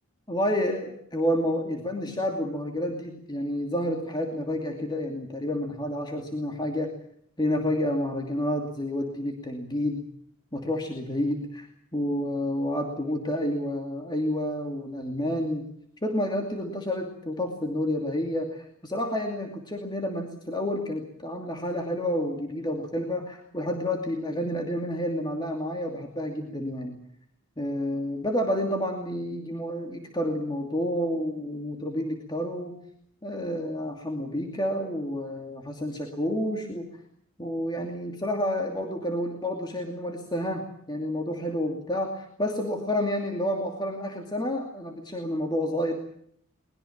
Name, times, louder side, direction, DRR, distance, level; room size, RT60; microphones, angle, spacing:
voice 1, 0.3-6.9 7.4-10.1 10.5-15.7 16.0-27.0 27.6-32.8 33.2-36.9 37.4-46.0, left 1 dB, 20° left, 2 dB, 2.6 m, -29 dB
22.5 x 21.0 x 7.2 m, 0.66 s
head